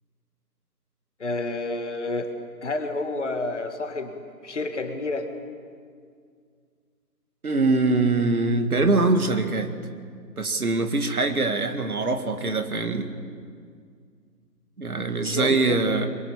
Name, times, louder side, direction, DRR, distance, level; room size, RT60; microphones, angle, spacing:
voice 1, 1.2-2.3 2.6-4.2 4.4-5.3 15.2-15.8, left 2 dB, 45° left, 6 dB, 2.2 m, -29 dB
voice 2, 7.4-9.7 10.4-13.1 14.8-16.1, right 3 dB, 60° right, 7 dB, 2.1 m, -23 dB
23.0 x 22.0 x 7.2 m, 2.1 s
figure-of-eight pair, 155°, 50 cm